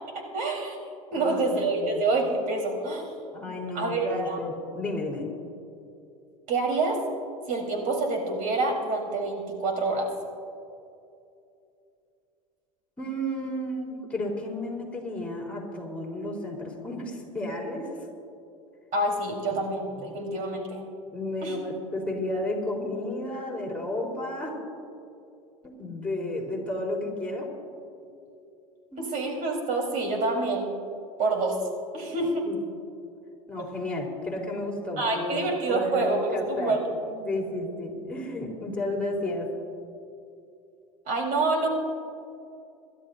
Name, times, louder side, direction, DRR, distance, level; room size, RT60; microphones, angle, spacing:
voice 1, 0.3-0.8 1.1-3.1 3.7-4.4 6.5-7.0 7.5-10.1 18.9-20.9 21.4-21.6 29.0-30.7 31.2-31.6 31.9-32.5 33.6-33.7 35.0-36.8 41.1-41.7, right 3 dB, 50° right, 0 dB, 4.2 m, -27 dB
voice 2, 1.1-2.0 3.3-5.3 13.0-17.9 19.4-19.7 19.9-20.2 21.1-24.6 25.6-27.5 28.9-29.0 32.4-32.6 33.5-39.5, left 1 dB, 5° left, -1 dB, 4.1 m, -32 dB
27.5 x 12.5 x 2.7 m, 2.6 s
hypercardioid pair, 90°, 18 cm